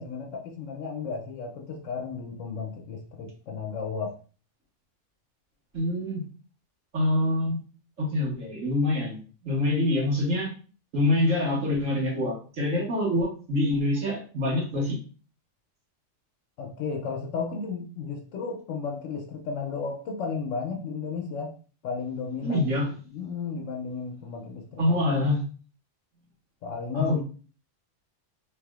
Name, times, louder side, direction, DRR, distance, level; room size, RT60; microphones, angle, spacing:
voice 1, 0.0-4.2 16.6-21.6 21.8-22.6 23.1-24.9 26.6-27.2, left 5 dB, 80° left, 0.9 m, -33 dB
voice 2, 5.7-6.2 6.9-7.6 8.0-9.2 9.4-10.5 10.9-15.0 22.4-22.9 24.8-25.4 26.9-27.2, left 1 dB, 90° right, 1.8 m, -25 dB
3.5 x 3.3 x 2.3 m
omnidirectional pair, 1.3 m